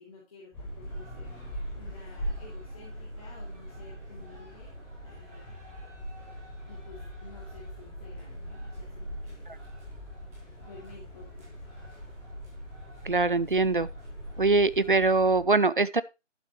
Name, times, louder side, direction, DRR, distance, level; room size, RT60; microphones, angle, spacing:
voice 1, 0.0-4.7 5.0-5.6 6.7-9.5 10.6-11.7, left 3 dB, 30° left, 2.6 m, -52 dB
sound 1, 0.5-15.4, equal, 5° left, 2.1 m, -41 dB
sound 2, 0.8-15.3, right 1 dB, 10° right, 2.6 m, -57 dB
voice 2, 13.0-13.9 14.4-16.0, right 3 dB, 45° right, 0.4 m, -23 dB
11.5 x 7.4 x 3.0 m
figure-of-eight pair, 160°, 37 cm